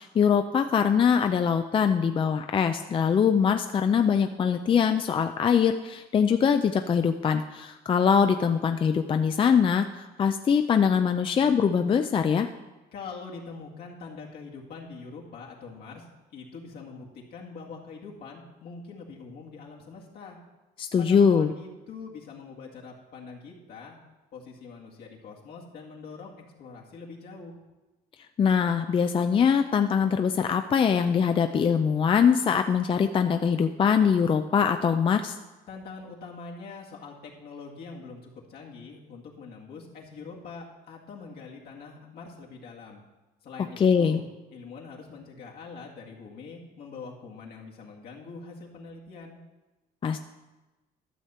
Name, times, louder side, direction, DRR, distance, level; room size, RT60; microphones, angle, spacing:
voice 1, 0.0-12.5 20.8-21.5 28.4-35.4 43.8-44.2 50.0-50.2, left 7 dB, 30° left, 7 dB, 0.4 m, -23 dB
voice 2, 12.9-16.1 16.3-20.4 21.0-24.0 24.3-26.3 26.6-27.6 35.7-43.0 43.4-44.2 44.5-49.4, left 4 dB, 65° left, -2 dB, 2.1 m, -43 dB
12.5 x 6.6 x 4.3 m, 1.1 s
cardioid pair, 110°, 17 cm